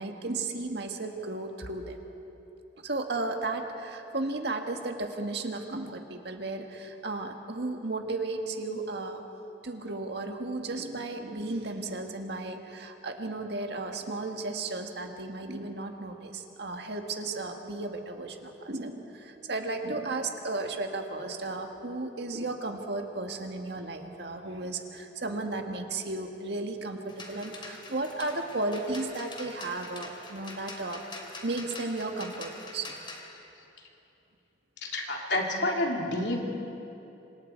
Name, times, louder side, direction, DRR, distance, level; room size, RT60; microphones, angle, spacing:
voice 1, 0.0-2.0 2.8-9.2 9.6-31.0 31.4-32.9, right 2 dB, 65° right, 4 dB, 1.8 m, -34 dB
sound 1, 27.1-33.2, left 2 dB, 25° left, 2.7 m, -44 dB
voice 2, 34.8-36.4, left 1 dB, 70° left, 0 dB, 3.1 m, -29 dB
26.5 x 26.5 x 4.6 m, 2.9 s
head